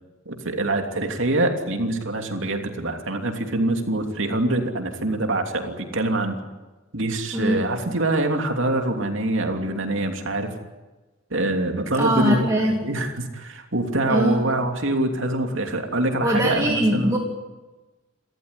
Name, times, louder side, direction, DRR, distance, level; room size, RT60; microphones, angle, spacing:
voice 1, 0.3-6.4 6.9-10.6 11.3-17.2, right 2 dB, 65° right, 4 dB, 3.0 m, -24 dB
voice 2, 11.9-12.8 14.1-14.4 16.2-17.2, equal, 15° right, -1 dB, 2.4 m, -21 dB
29.0 x 14.0 x 9.9 m, 1.2 s
head